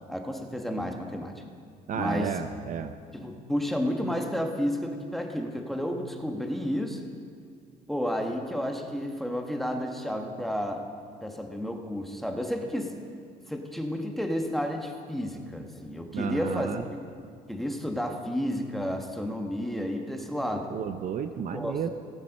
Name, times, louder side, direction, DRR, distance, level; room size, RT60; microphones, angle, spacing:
voice 1, 0.1-1.3 1.9-2.4 3.1-7.0 7.9-10.8 11.2-12.9 13.5-17.2 17.5-20.8 21.5-21.9, equal, ahead, 3 dB, 1.2 m, -31 dB
voice 2, 1.9-2.9 16.1-16.8 20.7-21.9, right 8 dB, 50° right, 9 dB, 0.6 m, -32 dB
17.0 x 7.5 x 5.4 m, 2.2 s
cardioid pair, 110°, 17 cm